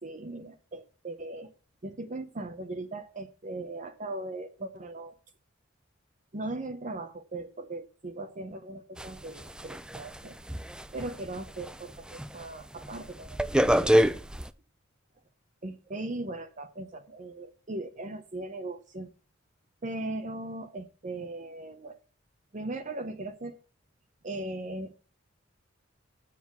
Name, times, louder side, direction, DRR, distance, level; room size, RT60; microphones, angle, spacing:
voice 1, 0.0-1.5 1.8-5.2 6.3-10.4 10.9-14.0 15.6-19.1 19.8-22.0 22.5-23.6 24.2-24.9, right 2 dB, 40° right, 7 dB, 0.8 m, -38 dB
sound 1, 9.0-11.8 12.1-12.4 12.8-14.5, equal, 5° right, 0.3 m, -26 dB
7.4 x 5.7 x 7.4 m, 0.37 s
head